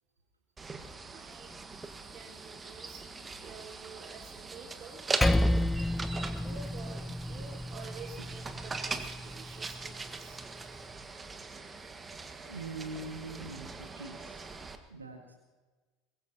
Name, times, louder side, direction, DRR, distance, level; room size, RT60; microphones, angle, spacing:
sound 1, 0.6-14.8, right 3 dB, 20° right, 1.6 m, -41 dB
voice 1, 1.0-1.5 2.1-5.0 6.4-10.4, right 5 dB, 40° right, -2 dB, 4.4 m, -50 dB
Percussion, 5.2-10.0, left 1 dB, 10° left, 0.4 m, -31 dB
voice 2, 12.4-14.5 14.9-15.3, right 3 dB, 85° right, 1 dB, 1.8 m, -43 dB
23.0 x 21.5 x 2.9 m, 1.3 s
figure-of-eight pair, 75°, 0 cm